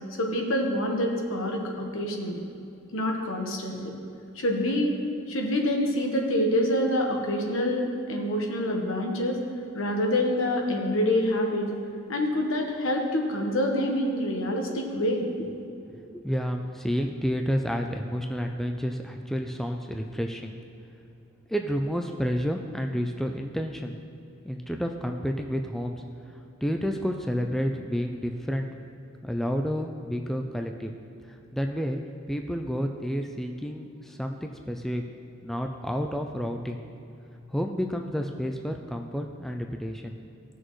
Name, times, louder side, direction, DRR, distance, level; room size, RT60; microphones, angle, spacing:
voice 1, 0.2-2.4 2.9-3.9 4.3-5.0 5.3-9.4 9.7-11.7 12.1-15.3, left 1 dB, 70° left, 1 dB, 1.2 m, -26 dB
voice 2, 15.9-20.6 21.5-24.0 24.4-26.0 26.3-28.7 29.2-30.9 31.2-32.0 32.3-35.0 35.4-36.8 37.5-40.2, equal, ahead, 3 dB, 0.3 m, -30 dB
16.0 x 6.2 x 3.1 m, 2.7 s
head